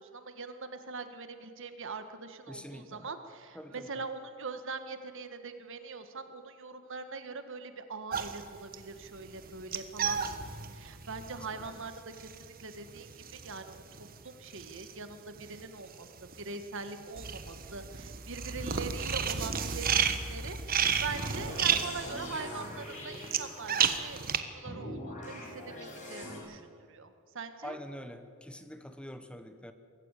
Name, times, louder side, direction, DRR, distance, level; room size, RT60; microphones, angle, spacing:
voice 1, 0.0-16.1 16.4-26.6 26.9-27.8, right 4 dB, 65° right, 8 dB, 1.7 m, -42 dB
voice 2, 2.5-3.1 3.5-3.8 11.5-11.6 27.6-29.7, equal, 5° left, 9 dB, 1.0 m, -45 dB
sound 1, 8.1-15.6 15.9-24.4, right 7 dB, 45° right, 1.3 m, -33 dB
sound 2, 21.1-23.9 24.7-26.4, left 1 dB, 35° left, 6.2 m, -43 dB
23.5 x 14.5 x 8.4 m, 2.1 s
head